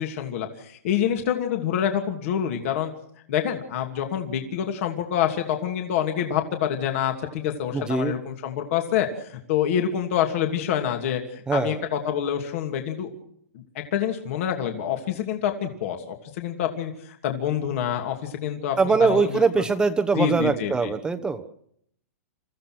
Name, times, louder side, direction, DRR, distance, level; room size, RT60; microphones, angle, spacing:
voice 1, 0.0-2.9 3.3-13.1 13.7-19.3 20.1-20.9, left 9 dB, 55° left, 4 dB, 2.8 m, -27 dB
voice 2, 7.7-8.1 11.5-11.8 18.8-21.5, right 4 dB, 10° right, 8 dB, 1.1 m, -22 dB
28.5 x 15.5 x 6.2 m, 0.68 s
hypercardioid pair, 145°, 9 cm